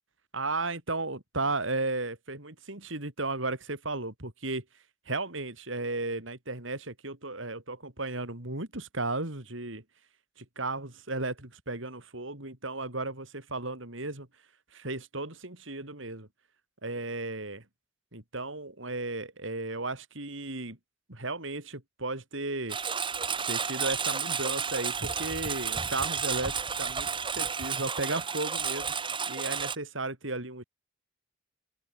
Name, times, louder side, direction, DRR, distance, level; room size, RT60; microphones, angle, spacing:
voice 1, 0.3-4.6 5.1-9.8 10.4-14.3 14.7-16.3 16.8-17.6 18.1-20.8 21.1-22.8 23.5-28.9 29.3-30.6, right 2 dB, 70° right, 4.4 m, -34 dB
Engine, 22.7-29.8, right 6 dB, 25° right, 2.5 m, -32 dB
head